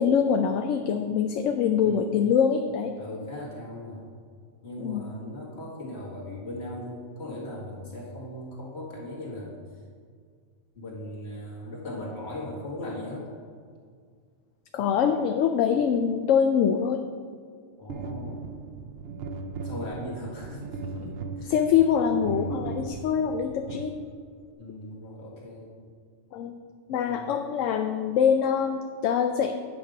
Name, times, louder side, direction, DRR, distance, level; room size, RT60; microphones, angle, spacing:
voice 1, 0.0-2.9 4.8-5.0 14.7-17.0 21.5-24.0 26.3-26.5 26.9-29.5, left 7 dB, 80° left, 6 dB, 0.9 m, -24 dB
voice 2, 1.8-2.2 3.0-4.1 4.6-9.6 10.7-13.3 17.8-18.6 19.6-21.6 24.6-25.7 27.0-27.3, left 1 dB, 60° left, -4 dB, 2.2 m, -38 dB
sound 1, 17.9-24.5, right 3 dB, 60° right, 0.8 m, -37 dB
9.3 x 6.0 x 5.0 m, 2.1 s
omnidirectional pair, 1.3 m